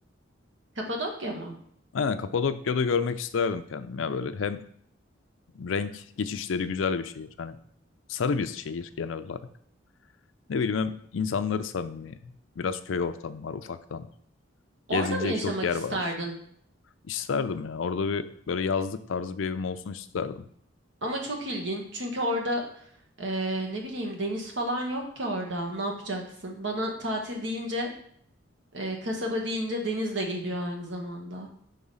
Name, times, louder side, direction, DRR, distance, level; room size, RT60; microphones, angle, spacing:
voice 1, 0.9-1.5 14.9-15.6 15.9-16.3 21.0-22.6 23.2-27.9 28.7-31.5, right 1 dB, 70° right, 1 dB, 1.4 m, -31 dB
voice 2, 1.9-4.6 5.5-7.6 8.1-9.4 10.5-12.2 12.6-14.1 14.9-16.0 17.1-20.4, left 5 dB, 85° left, 11 dB, 0.5 m, -29 dB
4.9 x 3.8 x 5.5 m, 0.65 s
head